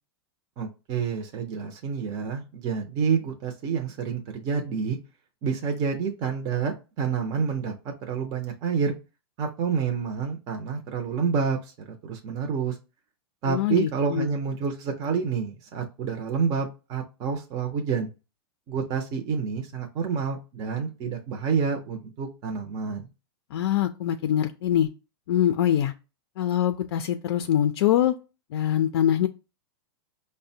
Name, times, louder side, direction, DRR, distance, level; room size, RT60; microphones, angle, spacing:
voice 1, 0.6-5.0 5.4-7.7 8.1-8.9 9.4-11.7 12.0-12.8 13.4-18.1 18.7-23.1, right 6 dB, 30° right, 0.6 m, -28 dB
voice 2, 13.4-14.3 23.5-24.9 25.3-25.9 26.4-28.2 28.5-29.3, left 11 dB, 65° left, 0.4 m, -23 dB
5.0 x 2.1 x 2.7 m
supercardioid pair, 150°, 14 cm